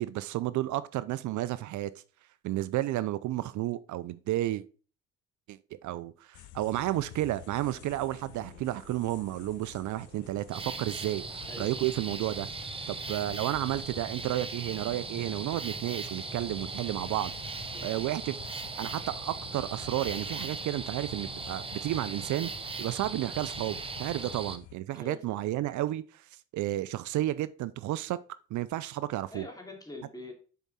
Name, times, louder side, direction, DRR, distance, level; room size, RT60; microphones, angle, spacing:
voice 1, 0.0-1.9 2.4-4.6 5.5-12.5 12.9-17.3 17.8-22.5 22.8-26.3 26.5-28.2 28.5-29.4, right 15 dB, 75° right, 0.5 m, -32 dB
sound 1, 6.3-24.8, left 15 dB, 75° left, 0.5 m, -50 dB
sound 2, 7.2-12.4, right 4 dB, 40° right, 2.3 m, -58 dB
sound 3, 10.5-24.6, right 3 dB, 20° right, 0.7 m, -39 dB
voice 2, 24.9-25.3 29.3-30.3, left 2 dB, 10° left, 2.5 m, -44 dB
7.0 x 4.7 x 4.1 m
cardioid pair, 90°, 30 cm